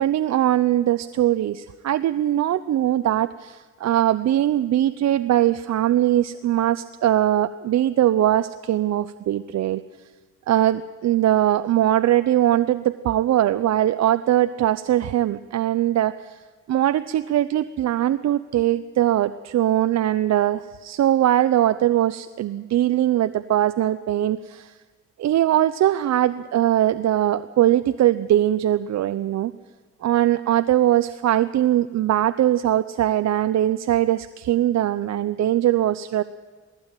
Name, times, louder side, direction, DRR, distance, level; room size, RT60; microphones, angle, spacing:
voice 1, 0.0-9.8 10.5-16.4 16.7-24.7 25.2-29.5 30.0-36.2, right 12 dB, 60° right, 13 dB, 0.7 m, -21 dB
19.0 x 15.5 x 9.1 m, 1.4 s
cardioid pair, 90°, 30 cm